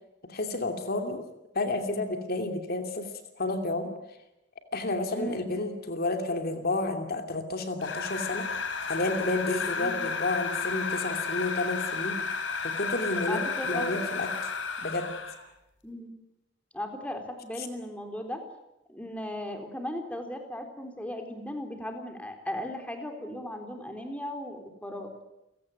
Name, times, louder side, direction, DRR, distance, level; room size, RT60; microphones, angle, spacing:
voice 1, 0.2-1.2 1.5-3.1 3.4-3.9 4.7-8.5 8.9-12.2 12.6-13.4 13.6-14.3 14.8-15.1 17.6-17.7, left 2 dB, 55° left, 6 dB, 2.8 m, -30 dB
voice 2, 5.1-5.5 9.8-10.0 13.3-13.9 15.8-16.1 16.7-18.4 18.9-25.1, left 1 dB, 5° left, 4 dB, 3.9 m, -37 dB
sound 1, 7.8-15.4, left 5 dB, 85° left, 4.1 m, -32 dB
30.0 x 17.5 x 9.2 m, 0.91 s
head